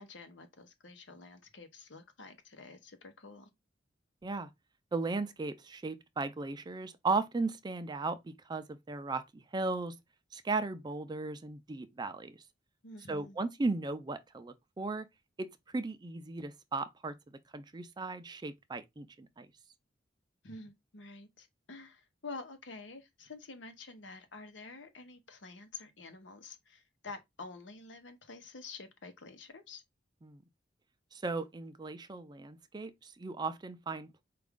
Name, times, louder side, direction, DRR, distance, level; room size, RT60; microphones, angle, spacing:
voice 1, 0.0-3.5 12.8-13.4 20.4-29.8, left 3 dB, 80° left, 0.8 m, -49 dB
voice 2, 4.9-10.0 10.3-12.4 13.1-15.1 15.4-17.1 17.5-19.5 30.2-30.4 31.1-34.2, right 3 dB, 25° right, 0.4 m, -36 dB
4.6 x 2.5 x 3.5 m
head